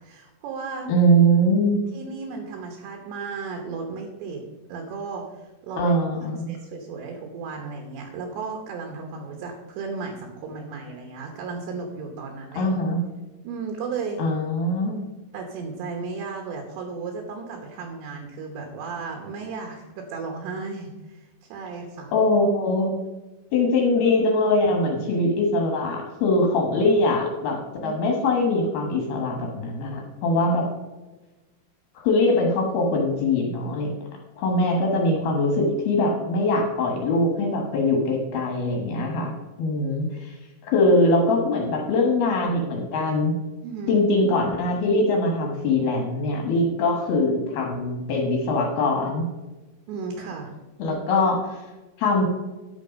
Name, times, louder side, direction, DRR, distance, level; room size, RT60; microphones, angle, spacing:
voice 1, 0.0-0.9 1.9-6.0 6.5-12.7 13.4-14.2 15.3-22.1 27.8-28.0 34.4-34.6 43.6-44.0 49.9-50.6, right 4 dB, 70° right, 2 dB, 3.0 m, -34 dB
voice 2, 0.9-1.8 5.8-6.5 12.6-13.0 14.2-15.0 22.1-22.9 23.5-30.7 32.0-34.0 34.4-39.3 39.6-40.3 40.6-43.3 43.9-49.3 50.8-51.6 52.0-52.3, left 1 dB, 65° left, 1 dB, 2.7 m, -22 dB
10.5 x 6.4 x 5.2 m, 1.1 s
omnidirectional pair, 5.9 m